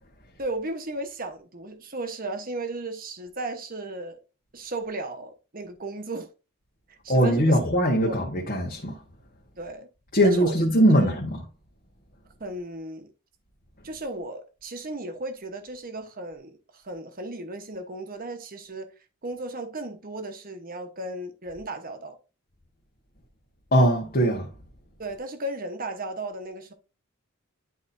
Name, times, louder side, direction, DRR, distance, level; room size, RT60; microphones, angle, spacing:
voice 1, 0.4-4.2 4.5-6.3 6.9-7.5 8.0-8.2 9.6-9.9 10.2-10.6 11.0-11.1 12.4-13.1 13.8-18.9 19.2-22.2 25.0-26.7, right 2 dB, 40° right, 1.1 m, -35 dB
voice 2, 7.1-9.0 10.1-11.4 23.7-24.5, equal, 40° left, 1.3 m, -21 dB
10.5 x 4.2 x 2.6 m
head